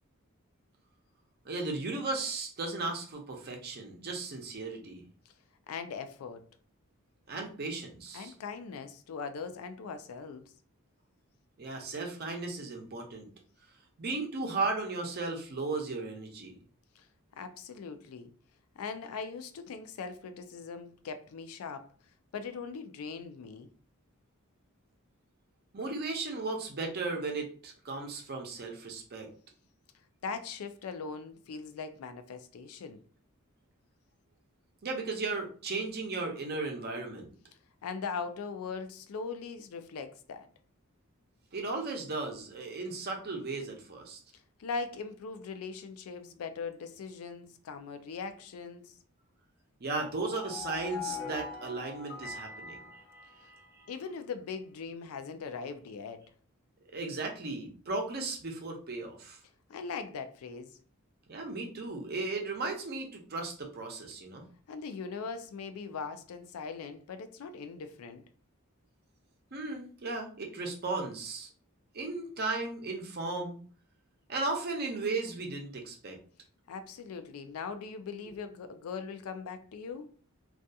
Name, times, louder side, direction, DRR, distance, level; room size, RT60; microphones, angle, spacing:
voice 1, 1.4-5.0 7.3-8.3 11.6-13.3 14.0-16.5 25.7-29.3 34.8-37.3 41.5-44.2 49.8-52.8 56.9-59.4 61.3-64.4 69.5-71.5 71.9-73.6 74.3-76.2, right 3 dB, 45° right, 0.6 m, -35 dB
voice 2, 5.7-6.4 8.1-10.5 17.0-17.1 17.4-18.3 18.8-21.9 22.3-23.7 30.2-33.0 37.8-40.5 44.6-49.0 53.4-53.5 53.9-56.3 59.7-60.7 64.7-68.2 76.7-80.1, left 5 dB, 85° left, 0.4 m, -40 dB
sound 1, 49.9-53.9, left 5 dB, 40° left, 0.8 m, -42 dB
2.7 x 2.3 x 2.3 m
head